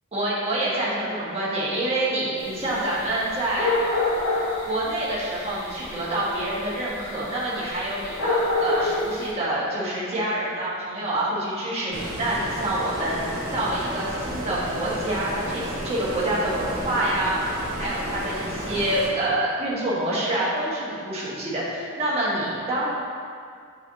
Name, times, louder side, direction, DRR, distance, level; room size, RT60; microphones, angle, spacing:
voice 1, 0.1-3.7 4.6-22.9, right 1 dB, 30° right, -8 dB, 1.5 m, -27 dB
sound 1, 2.4-9.3, left 2 dB, 70° left, 1.2 m, -28 dB
Stream, 11.9-19.1, equal, 85° right, 1.5 m, -32 dB
8.2 x 4.2 x 2.8 m, 2.3 s
head